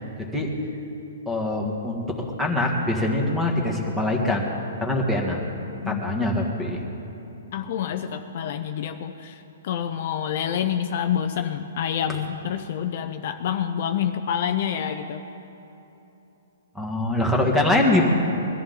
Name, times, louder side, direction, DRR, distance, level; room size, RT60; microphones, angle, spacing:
voice 1, 0.2-0.5 1.2-4.5 4.8-5.4 5.9-6.8 16.7-18.0, left 1 dB, 5° right, -1 dB, 1.7 m, -23 dB
voice 2, 7.5-15.2, left 9 dB, 50° left, 7 dB, 0.6 m, -27 dB
22.5 x 14.0 x 3.9 m, 3.0 s
hypercardioid pair, 160°, 0 cm